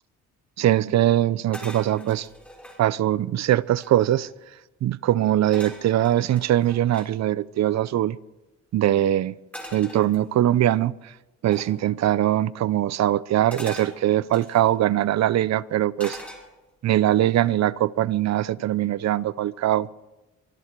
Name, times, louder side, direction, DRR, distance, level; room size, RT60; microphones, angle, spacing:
voice 1, 0.6-2.3 2.8-4.3 4.8-8.2 8.7-9.3 9.7-10.9 11.4-16.2 16.8-19.9, right 13 dB, 60° right, 0.6 m, -22 dB
sound 1, 1.5-2.8 3.4-3.5 3.7-4.3 5.5-7.1 9.5-10.6 11.5-11.8 13.5-14.7 16.0-16.8 17.3-17.6, equal, 5° left, 5.7 m, -42 dB
24.0 x 12.5 x 4.6 m
cardioid pair, 90°, 30 cm